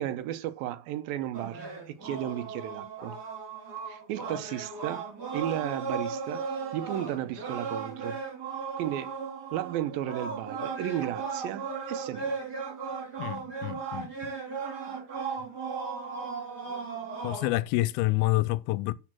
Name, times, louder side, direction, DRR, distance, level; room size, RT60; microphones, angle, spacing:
voice 1, 0.0-3.2 3.9-8.2 8.8-9.2 9.5-12.4, right 12 dB, 80° right, 2.4 m, -34 dB
sound 1, 1.3-17.6, right 5 dB, 30° right, 2.6 m, -36 dB
voice 2, 13.2-14.3 17.2-18.9, left 18 dB, 85° left, 2.5 m, -28 dB
12.0 x 4.9 x 6.2 m
omnidirectional pair, 4.3 m